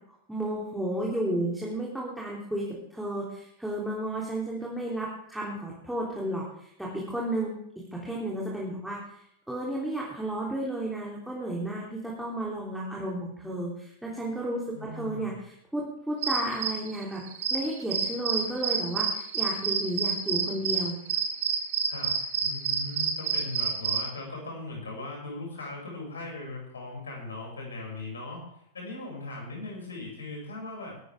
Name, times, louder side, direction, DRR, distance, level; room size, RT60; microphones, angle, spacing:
voice 1, 0.3-7.5 7.9-9.2 9.5-15.3 15.7-17.2 17.5-21.0, right 1 dB, 5° right, -4 dB, 3.4 m, -32 dB
voice 2, 14.7-15.4 21.9-28.4 28.7-30.9, left 2 dB, 70° left, 0 dB, 6.9 m, -39 dB
sound 1, 16.2-24.0, right 6 dB, 55° right, 2.8 m, -28 dB
21.0 x 13.0 x 3.7 m, 0.73 s
figure-of-eight pair, 90°, 0 cm